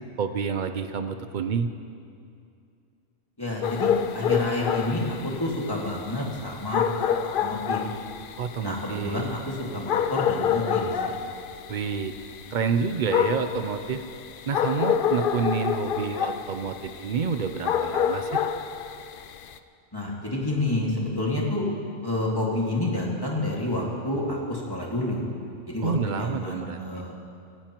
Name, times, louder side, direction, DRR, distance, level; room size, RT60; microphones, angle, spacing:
voice 1, 0.2-1.7 8.4-9.3 11.7-12.1 12.5-14.0 14.5-18.4 25.8-27.0, right 6 dB, 55° right, 8 dB, 0.5 m, -28 dB
voice 2, 3.4-7.8 8.6-11.1 19.9-21.6 22.0-25.2 25.7-25.9 26.2-27.1, left 1 dB, 20° left, -3 dB, 2.0 m, -29 dB
sound 1, 3.6-19.6, left 8 dB, 60° left, 0.5 m, -28 dB
17.5 x 15.5 x 3.0 m, 2.5 s
omnidirectional pair, 1.3 m